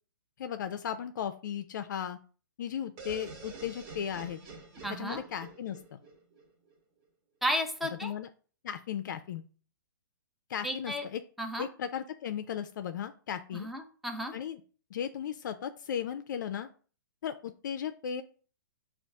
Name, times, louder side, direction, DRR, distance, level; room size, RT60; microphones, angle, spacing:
voice 1, 0.4-2.2 2.6-4.4 4.9-6.0 8.0-8.3 8.6-9.4 10.5-11.2 11.6-13.7 14.3-14.6 14.9-16.7 17.2-18.2, left 9 dB, 65° left, 8 dB, 0.4 m, -36 dB
sound 1, 3.0-6.7, right 4 dB, 30° right, 1.1 m, -47 dB
voice 2, 4.8-5.2 7.4-8.1 10.6-11.1 11.4-11.7 13.5-14.3, equal, ahead, 4 dB, 0.5 m, -33 dB
5.0 x 2.4 x 3.4 m, 0.39 s
hypercardioid pair, 135°, 11 cm